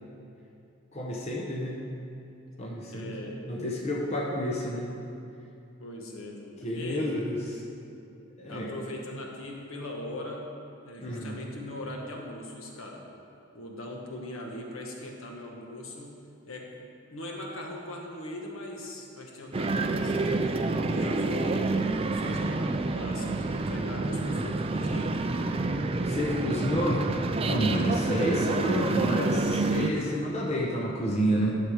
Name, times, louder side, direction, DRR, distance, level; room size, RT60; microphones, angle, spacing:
voice 1, 0.9-1.8 2.6-3.2 3.5-4.9 6.6-7.6 8.4-8.7 11.0-11.4 26.1-27.1 27.4-31.5, equal, 30° left, -3 dB, 0.9 m, -29 dB
voice 2, 2.9-3.4 5.8-7.1 8.5-10.5 10.8-13.0 13.5-16.2 16.5-20.5 20.9-21.7 22.0-25.5 27.6-28.4 29.8-30.2, left 1 dB, 70° left, 0 dB, 1.3 m, -40 dB
sound 1, 19.5-29.9, right 3 dB, 25° right, 0.3 m, -28 dB
11.0 x 6.5 x 4.9 m, 2.7 s
head